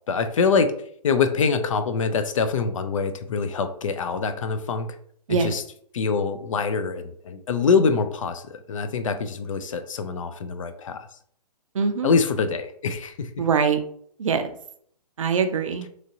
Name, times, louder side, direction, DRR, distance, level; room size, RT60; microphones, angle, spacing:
voice 1, 0.1-0.7 1.0-5.0 5.3-5.6 5.9-11.1 12.0-13.4, left 5 dB, 50° left, 9 dB, 0.4 m, -24 dB
voice 2, 11.7-12.2 13.4-13.8 14.2-14.5 15.2-15.9, right 6 dB, 50° right, 8 dB, 0.4 m, -23 dB
3.0 x 2.5 x 2.6 m, 0.62 s
figure-of-eight pair, 130°, 21 cm